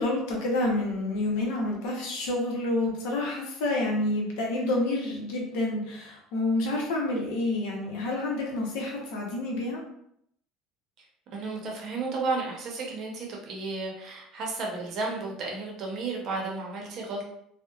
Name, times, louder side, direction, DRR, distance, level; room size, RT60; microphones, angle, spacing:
voice 1, 0.0-9.8, left 2 dB, 85° left, -1 dB, 0.7 m, -28 dB
voice 2, 11.3-17.2, right 3 dB, 45° right, -1 dB, 0.7 m, -33 dB
2.7 x 2.1 x 2.3 m, 0.73 s
cardioid pair, 155°, 0 cm